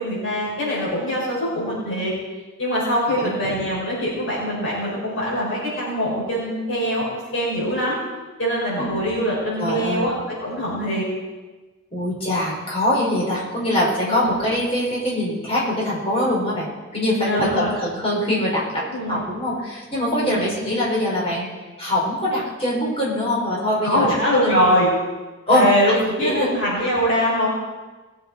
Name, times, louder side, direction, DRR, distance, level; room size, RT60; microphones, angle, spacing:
voice 1, 0.0-2.1 2.6-7.1 7.3-8.0 8.4-10.1 10.4-11.0 14.0-14.3 17.2-17.7 18.9-19.2 20.2-20.5 23.8-24.9 25.5-27.5, equal, 85° left, -7 dB, 5.3 m, -22 dB
voice 2, 9.6-10.1 11.9-24.2 24.4-24.6 25.5-25.7 25.9-26.5, left 1 dB, 30° left, -5 dB, 4.7 m, -23 dB
19.5 x 7.9 x 4.6 m, 1.2 s
head